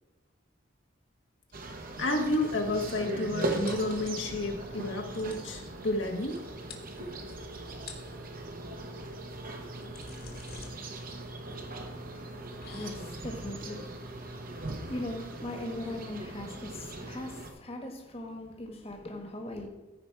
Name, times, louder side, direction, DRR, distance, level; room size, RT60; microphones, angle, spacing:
sound 1, 1.5-17.5, right 2 dB, 50° right, 1.2 m, -39 dB
voice 1, 2.0-6.4 7.0-7.1, left 2 dB, 80° left, 2 dB, 1.5 m, -31 dB
sound 2, 3.7-4.5 4.9-5.0 5.1-5.5 6.4-6.5 6.7-7.4 7.7-8.2 9.4-16.0, left 4 dB, 55° left, 1.6 m, -51 dB
voice 2, 11.5-19.7, left 1 dB, 35° left, 3 dB, 1.4 m, -41 dB
14.5 x 4.9 x 4.6 m, 1.1 s
head